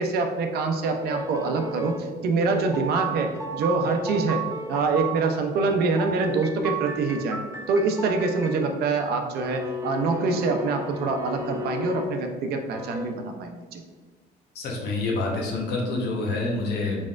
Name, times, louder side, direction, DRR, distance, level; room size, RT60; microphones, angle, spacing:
voice 1, 0.0-7.4 7.7-13.8, right 3 dB, 70° right, 5 dB, 0.6 m, -25 dB
sound 1, 1.0-2.0 2.5-5.2 6.0-8.6 9.4-12.0 12.7-13.1, right 2 dB, 15° right, 0.6 m, -34 dB
voice 2, 14.5-17.0, left 2 dB, 75° left, -1 dB, 1.0 m, -27 dB
4.1 x 3.5 x 2.5 m, 1.4 s
cardioid pair, 110°, 17 cm